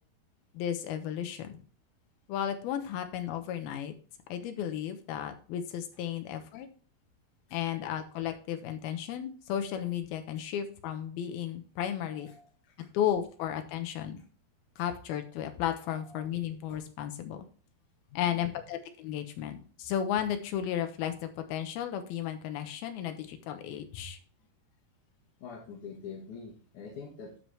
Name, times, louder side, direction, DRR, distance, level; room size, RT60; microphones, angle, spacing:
voice 1, 0.5-1.6 2.3-3.9 4.3-6.7 7.5-12.3 12.9-14.2 14.8-17.5 18.1-24.2, left 10 dB, 75° left, 8 dB, 2.8 m, -34 dB
voice 2, 12.0-12.5 15.9-16.2 18.1-18.5 25.4-27.4, left 5 dB, 60° left, -1 dB, 2.7 m, -45 dB
12.5 x 4.8 x 3.4 m, 0.40 s
omnidirectional pair, 4.7 m